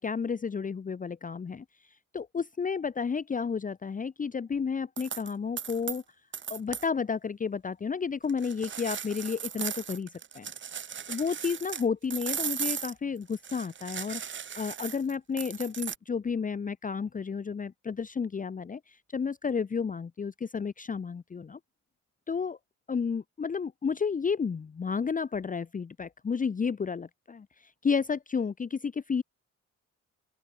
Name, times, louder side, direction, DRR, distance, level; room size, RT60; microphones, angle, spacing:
voice 1, 0.0-6.0 6.5-10.5 11.1-14.2 14.6-21.6 22.3-22.6 22.9-29.2, left 5 dB, 25° left, 0.8 m, -32 dB
sound 1, 5.0-5.3 5.6-6.0 6.3-6.9 8.3-11.8 12.1-16.0, right 8 dB, 40° right, 1.0 m, -37 dB
open air
cardioid pair, 90°, 30 cm